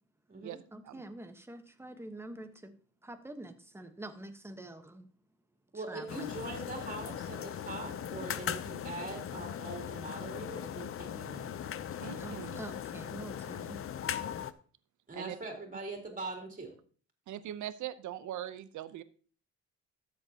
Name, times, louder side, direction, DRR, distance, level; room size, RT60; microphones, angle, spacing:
voice 1, 0.7-2.8 3.0-5.1 5.7-6.3 12.2-13.8, right 1 dB, 10° right, 7 dB, 1.2 m, -46 dB
voice 2, 5.7-11.6 15.1-16.7, right 2 dB, 25° right, 1 dB, 3.6 m, -42 dB
sound 1, 6.1-14.5, left 9 dB, 45° left, 0.6 m, -39 dB
voice 3, 12.0-12.6 15.1-15.4 17.3-19.0, right 12 dB, 75° right, 14 dB, 0.8 m, -41 dB
13.5 x 7.7 x 2.9 m, 0.42 s
cardioid pair, 90°, 30 cm